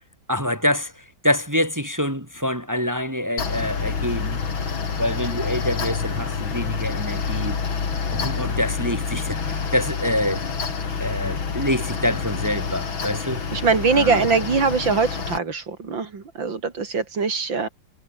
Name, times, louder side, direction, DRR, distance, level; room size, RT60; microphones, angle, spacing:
voice 1, 0.3-4.4 5.0-7.6 8.1-10.4 11.0-13.4 13.9-14.4, left 1 dB, 10° right, 4.4 m, -26 dB
Mechanical fan, 3.4-15.4, left 5 dB, 80° left, 3.6 m, -27 dB
voice 2, 13.5-17.7, right 5 dB, 70° right, 3.9 m, -22 dB
omnidirectional pair, 2.2 m